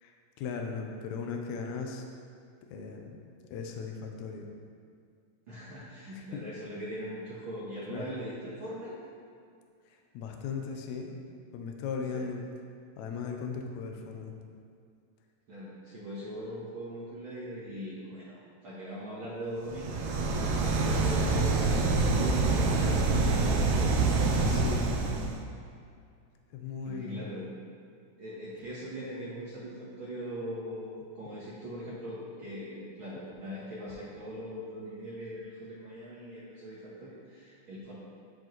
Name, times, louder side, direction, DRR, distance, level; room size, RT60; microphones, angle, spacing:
voice 1, 0.0-2.0 2.7-3.2 3.5-4.5 6.1-6.4 7.9-8.1 9.9-11.2 11.5-12.5 13.0-14.4 24.4-24.9 26.5-27.4, left 5 dB, 75° left, 2 dB, 1.8 m, -37 dB
voice 2, 5.5-9.0 12.1-12.3 15.5-20.3 20.6-23.9 26.8-27.5 28.2-37.9, equal, 55° right, -8 dB, 1.5 m, -40 dB
sound 1, 19.7-25.4, right 3 dB, 90° right, 2.4 m, -26 dB
12.0 x 4.7 x 3.0 m, 2.3 s
omnidirectional pair, 3.7 m